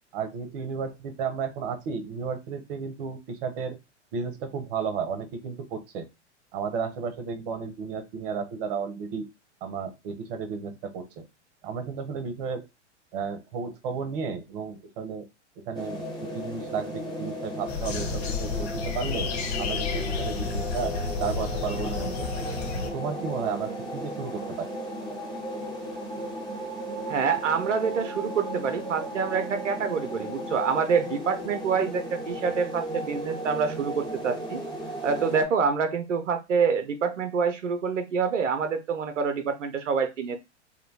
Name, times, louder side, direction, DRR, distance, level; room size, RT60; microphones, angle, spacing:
voice 1, 0.1-3.8 4.1-6.1 6.5-9.3 9.6-11.2 11.6-12.7 13.1-15.3 15.7-19.3 19.6-22.5 22.8-24.7, right 6 dB, 50° right, 9 dB, 0.7 m, -33 dB
sound 1, 15.7-35.4, equal, 10° left, 0.9 m, -35 dB
sound 2, 17.7-22.9, left 5 dB, 60° left, 0.7 m, -31 dB
voice 2, 27.1-34.6 35.0-40.4, right 6 dB, 90° right, 7 dB, 0.5 m, -26 dB
2.7 x 2.2 x 2.6 m, 0.24 s
hypercardioid pair, 100°, 36 cm